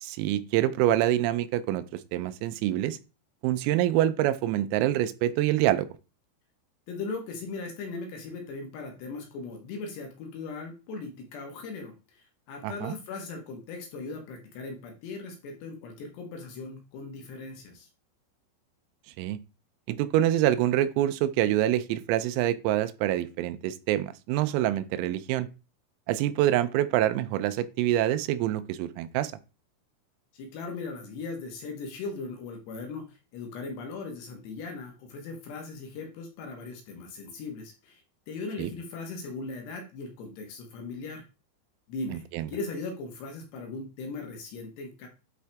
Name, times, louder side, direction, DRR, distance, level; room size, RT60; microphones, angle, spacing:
voice 1, 0.0-1.8 2.1-3.0 3.4-5.9 12.6-12.9 19.2-19.4 19.9-25.5 26.1-29.3 38.6-38.7 42.3-42.5, right 13 dB, 90° right, 3.4 m, -26 dB
voice 2, 6.9-17.9 30.3-41.2 41.9-45.1, left 3 dB, 65° left, 3.1 m, -39 dB
11.0 x 4.7 x 3.4 m
omnidirectional pair, 5.9 m